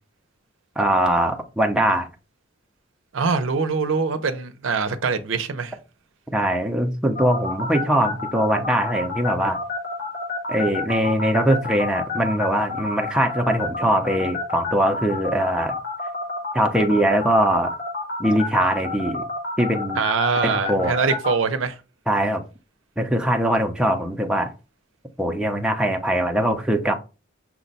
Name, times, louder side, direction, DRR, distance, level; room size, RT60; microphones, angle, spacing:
voice 1, 0.8-2.1 6.3-9.6 10.5-15.7 16.5-17.7 18.2-19.2 19.6-20.0 20.4-20.9 22.1-22.4 23.0-24.5 25.2-26.9, right 1 dB, 5° right, 0.6 m, -21 dB
voice 2, 3.1-5.8 20.0-21.8, right 5 dB, 75° right, 0.6 m, -23 dB
sound 1, 7.2-21.3, left 4 dB, 50° left, 1.3 m, -29 dB
5.9 x 2.2 x 4.0 m
head